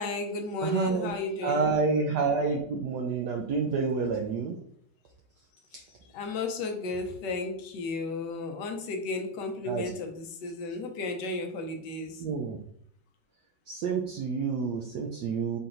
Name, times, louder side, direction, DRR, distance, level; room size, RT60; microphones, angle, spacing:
voice 1, 0.0-1.7 5.7-12.2, left 3 dB, 70° left, 4 dB, 1.2 m, -34 dB
voice 2, 0.6-1.1 1.4-4.5 9.7-9.8 12.2-12.6 13.7-15.6, right 4 dB, 75° right, 1 dB, 1.0 m, -28 dB
4.3 x 3.9 x 2.5 m, 0.67 s
omnidirectional pair, 2.1 m